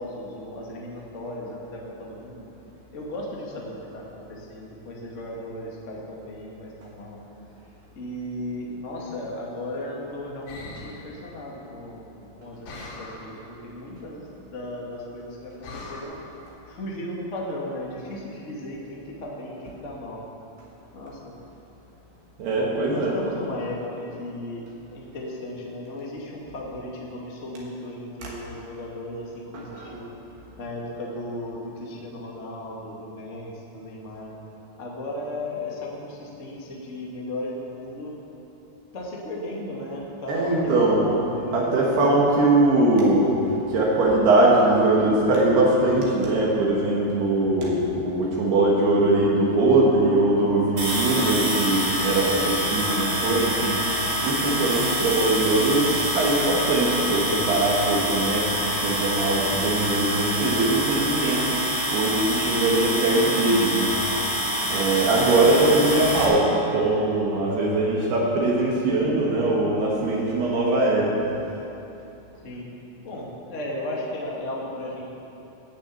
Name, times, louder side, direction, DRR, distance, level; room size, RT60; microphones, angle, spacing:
voice 1, 0.0-2.4 2.9-7.2 7.9-16.2 16.6-20.2 20.9-21.3 22.6-24.6 24.9-30.1 30.6-34.3 34.8-38.1 38.9-41.9 72.4-72.7 73.0-75.0, left 1 dB, 50° left, -3 dB, 0.8 m, -35 dB
sound 1, 10.5-11.2 12.6-13.4 15.6-16.0, left 3 dB, 70° left, 5.8 m, -40 dB
voice 2, 22.4-23.2 28.2-28.3 29.5-29.9 40.3-41.1 41.5-43.3 43.7-61.5 61.9-63.9 64.7-71.2, right 2 dB, 70° right, -4 dB, 3.5 m, -21 dB
sound 2, 50.8-66.2, equal, 35° right, 4.1 m, -26 dB
15.0 x 7.2 x 8.5 m, 3.0 s
omnidirectional pair, 5.0 m